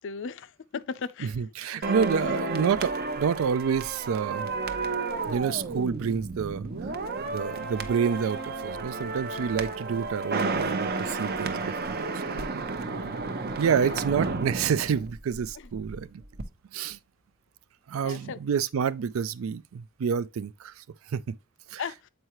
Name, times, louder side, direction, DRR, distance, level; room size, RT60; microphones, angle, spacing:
voice 1, 0.0-1.9 12.9-13.4 13.7-14.0 18.0-18.4 21.8-22.0, left 5 dB, 60° left, 0.5 m, -38 dB
voice 2, 1.2-4.5 5.3-6.7 7.2-12.4 13.6-16.2 16.7-17.0 17.9-20.8 21.1-21.4 21.7-21.8, right 7 dB, 80° right, 0.4 m, -28 dB
sound 1, 1.8-16.4, right 3 dB, 50° right, 0.7 m, -32 dB
7.9 x 4.6 x 2.9 m
head